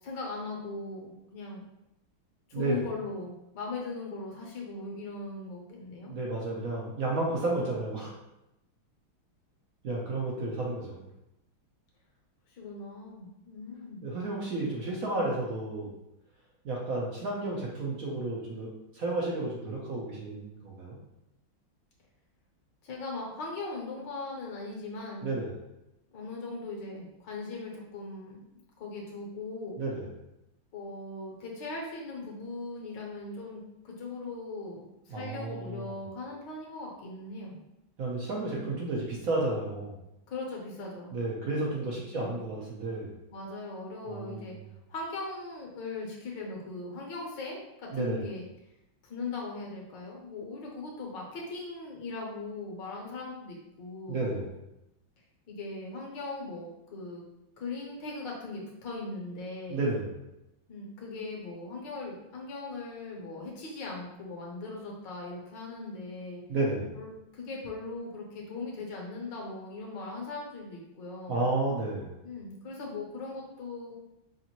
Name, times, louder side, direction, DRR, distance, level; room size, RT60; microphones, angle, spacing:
voice 1, 0.0-1.6 2.5-6.1 12.5-14.0 22.8-25.4 26.1-28.5 28.8-29.8 30.7-37.6 40.3-41.2 42.1-42.4 43.3-44.5 44.9-48.4 49.0-54.3 55.5-57.2 57.6-59.9 60.7-66.4 66.9-71.5 72.2-73.9, left 3 dB, 65° left, -2 dB, 1.4 m, -39 dB
voice 2, 2.5-2.8 6.1-8.2 9.8-11.0 14.0-15.9 16.6-18.7 18.9-21.0 25.2-25.5 29.8-30.1 35.1-35.9 38.0-39.9 41.1-43.1 44.1-44.5 47.9-48.2 54.1-54.5 59.7-60.1 66.5-66.9 71.3-72.1, right 2 dB, 70° right, -3 dB, 0.8 m, -32 dB
5.6 x 2.6 x 2.9 m, 0.89 s
omnidirectional pair, 2.3 m